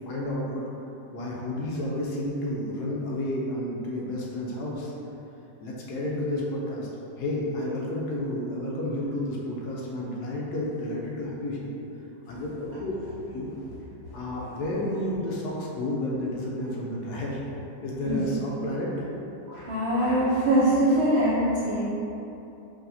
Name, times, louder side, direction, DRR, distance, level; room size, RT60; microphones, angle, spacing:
voice 1, 0.1-0.6 1.1-4.9 5.6-6.9 7.2-11.7 12.3-12.9 13.3-13.5 14.1-17.4 17.8-19.1, left 1 dB, 70° left, -4 dB, 1.1 m, -31 dB
voice 2, 19.5-21.8, right 1 dB, 65° right, -10 dB, 0.6 m, -23 dB
4.8 x 3.4 x 2.7 m, 3.0 s
omnidirectional pair, 1.9 m